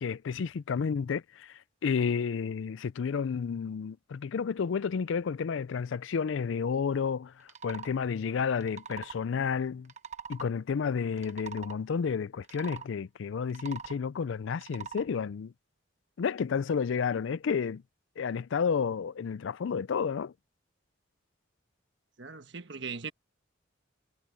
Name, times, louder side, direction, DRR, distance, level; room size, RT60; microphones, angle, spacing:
voice 1, 0.0-9.9 10.3-15.5 16.2-17.8 18.2-20.3, left 6 dB, 70° left, 0.4 m, -31 dB
sound 1, 7.4-7.9 8.5-9.2 9.8-10.5 11.1-11.8 12.4-12.9 13.4-14.0 14.5-15.1, right 6 dB, 35° right, 1.0 m, -43 dB
voice 2, 22.2-23.1, right 5 dB, 60° right, 1.4 m, -39 dB
head